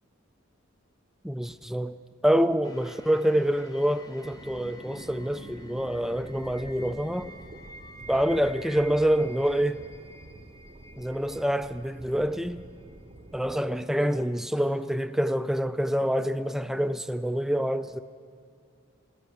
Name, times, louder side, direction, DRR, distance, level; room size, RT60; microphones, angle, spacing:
voice 1, 1.2-2.0 2.2-7.3 8.1-9.8 11.0-12.6 13.3-18.0, equal, ahead, 0.3 m, -26 dB
sound 1, 2.6-13.7 14.3-14.4, right 1 dB, 20° left, 0.8 m, -50 dB
sound 2, 4.2-13.6, right 1 dB, 35° right, 0.7 m, -47 dB
16.5 x 11.0 x 7.1 m
head